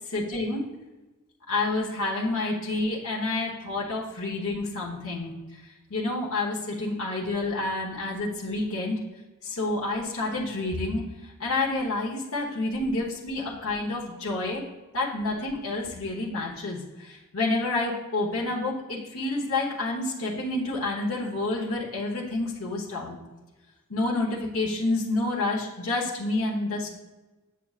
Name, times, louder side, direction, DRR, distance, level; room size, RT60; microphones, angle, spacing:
voice 1, 0.1-0.6 1.5-5.3 5.9-9.0 9.4-11.1 11.4-14.6 14.9-23.2 23.9-26.9, left 2 dB, 75° left, -4 dB, 1.1 m, -29 dB
7.5 x 6.8 x 2.4 m, 1.1 s
head